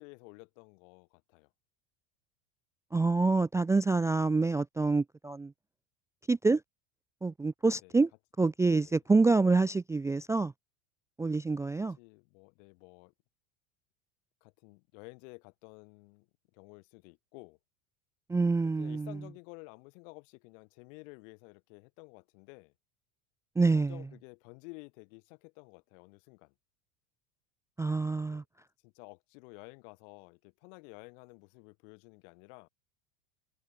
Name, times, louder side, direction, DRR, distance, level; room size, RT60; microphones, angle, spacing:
voice 1, 0.0-1.5 7.6-8.0 8.6-9.0 11.7-13.1 14.4-17.6 18.6-22.7 23.7-26.5 28.0-28.4 28.8-32.7, left 33 dB, 70° left, 2.6 m, -52 dB
voice 2, 2.9-5.5 6.3-6.6 7.2-8.1 8.4-10.5 11.2-12.0 18.3-19.1 23.6-23.9 27.8-28.4, right 3 dB, 10° right, 0.4 m, -26 dB
hypercardioid pair, 100°, 41 cm